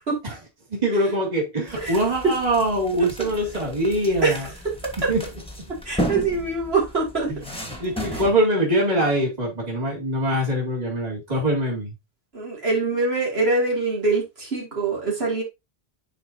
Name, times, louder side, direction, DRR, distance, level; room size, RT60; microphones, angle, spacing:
voice 1, 0.7-4.5 5.1-5.2 5.6-5.7 7.3-7.4 7.8-11.9, right 1 dB, 40° right, 2.4 m, -23 dB
sound 1, 1.7-8.3, equal, 5° left, 1.3 m, -34 dB
voice 2, 5.8-7.3 8.1-8.2 12.3-15.4, right 3 dB, 70° right, 2.6 m, -23 dB
9.9 x 4.4 x 2.6 m
omnidirectional pair, 1.1 m